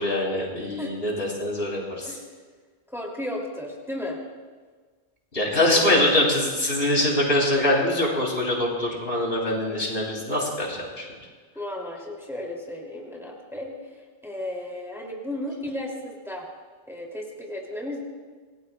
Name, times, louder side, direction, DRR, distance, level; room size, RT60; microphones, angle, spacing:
voice 1, 0.0-2.1 5.3-11.0, left 1 dB, 70° left, -2 dB, 3.3 m, -24 dB
voice 2, 2.9-4.2 5.7-6.4 11.5-16.5 16.9-18.0, left 1 dB, ahead, -2 dB, 2.4 m, -34 dB
26.5 x 17.5 x 2.2 m, 1.5 s
omnidirectional pair, 1.1 m